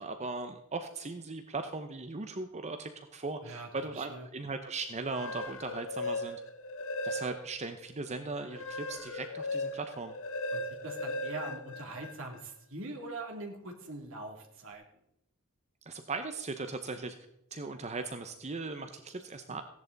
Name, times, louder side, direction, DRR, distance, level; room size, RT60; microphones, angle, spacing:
voice 1, 0.0-6.4 7.0-10.1 15.8-17.2 17.5-19.6, right 3 dB, 30° right, 8 dB, 0.8 m, -38 dB
voice 2, 3.4-4.3 10.5-14.8, right 2 dB, 65° right, 1 dB, 2.8 m, -43 dB
sound 1, 5.0-7.7 8.1-12.4, left 2 dB, 65° left, 0.9 m, -38 dB
16.0 x 10.5 x 4.0 m, 0.80 s
head